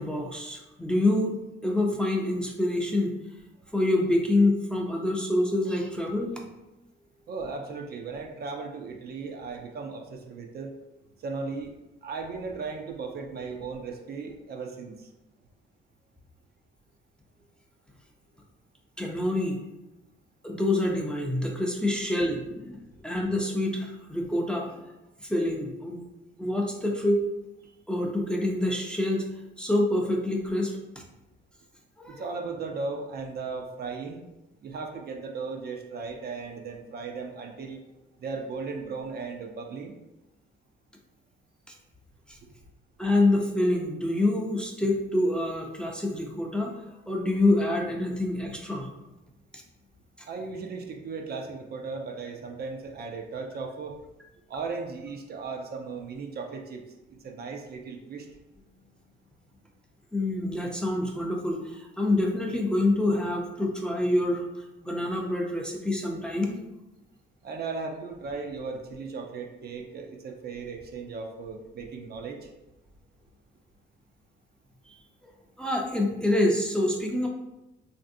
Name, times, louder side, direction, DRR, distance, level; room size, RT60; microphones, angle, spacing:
voice 1, 0.0-1.3 1.6-3.1 3.7-6.3 19.0-19.6 20.4-24.7 25.2-26.0 26.4-27.2 27.9-29.3 29.6-30.8 32.0-32.2 42.3-42.4 43.0-46.7 47.1-48.9 49.5-49.6 60.1-64.5 64.8-66.5 75.6-77.3, left 1 dB, 5° left, 0 dB, 0.5 m, -26 dB
voice 2, 7.3-10.7 11.2-11.7 12.0-15.1 22.9-23.0 27.6-27.7 32.1-34.2 34.6-37.8 38.2-39.9 42.4-42.5 50.3-54.0 54.5-56.8 57.1-58.3 67.4-72.5, right 4 dB, 55° right, 3 dB, 0.5 m, -36 dB
3.1 x 2.6 x 2.6 m, 0.97 s
cardioid pair, 90°, 20 cm